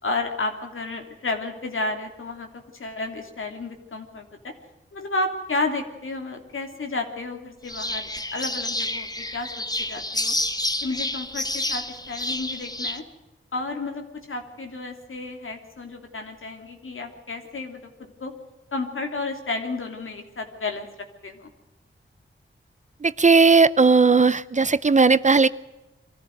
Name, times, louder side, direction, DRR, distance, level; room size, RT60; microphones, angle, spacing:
voice 1, 0.0-4.5 4.9-10.3 10.8-13.0 13.5-17.9 18.2-18.3 18.7-20.9 21.2-21.5, left 3 dB, 75° left, 4 dB, 3.0 m, -32 dB
sound 1, 7.7-13.0, left 1 dB, 20° left, 1.4 m, -29 dB
voice 2, 23.0-25.5, right 4 dB, 35° right, 16 dB, 0.6 m, -17 dB
23.5 x 14.5 x 7.9 m, 1.0 s
wide cardioid pair, 80°, 21 cm